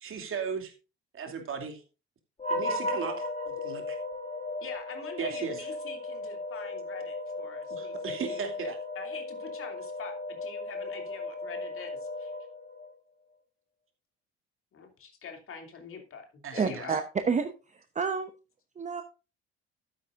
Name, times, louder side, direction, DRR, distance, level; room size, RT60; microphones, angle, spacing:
voice 1, 0.0-0.7 1.1-1.8 2.5-4.0 5.2-5.7 7.7-8.8 16.4-17.0, right 6 dB, 40° right, 4 dB, 2.6 m, -36 dB
sound 1, 2.4-12.9, left 2 dB, 20° left, 2.3 m, -36 dB
voice 2, 4.6-8.5 9.0-11.9 12.2-12.3 14.7-16.3 16.5-17.0, left 5 dB, 40° left, 4 dB, 2.7 m, -44 dB
voice 3, 16.6-18.3 18.8-19.0, right 5 dB, 20° right, 9 dB, 0.9 m, -30 dB
13.0 x 9.9 x 2.5 m, 0.31 s
figure-of-eight pair, 55°, 33 cm